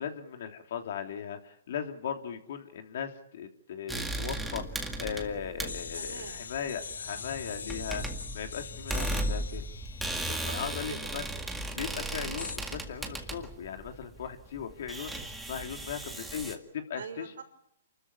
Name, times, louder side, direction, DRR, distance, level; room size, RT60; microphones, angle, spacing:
voice 1, 0.0-8.0 8.3-9.6 10.5-11.2 11.7-17.3, left 8 dB, 55° left, 5 dB, 3.2 m, -38 dB
sound 1, 3.9-16.5, right 1 dB, 5° right, 1.9 m, -36 dB
sound 2, 5.7-11.4 12.4-12.6, left 6 dB, 90° left, 0.8 m, -43 dB
voice 2, 6.0-6.5 7.1-7.3 10.3-10.6 10.9-11.7 15.6-15.9 16.9-17.4, right 6 dB, 75° right, 3 dB, 5.9 m, -45 dB
28.5 x 13.5 x 9.9 m, 0.77 s
hypercardioid pair, 160°, 0 cm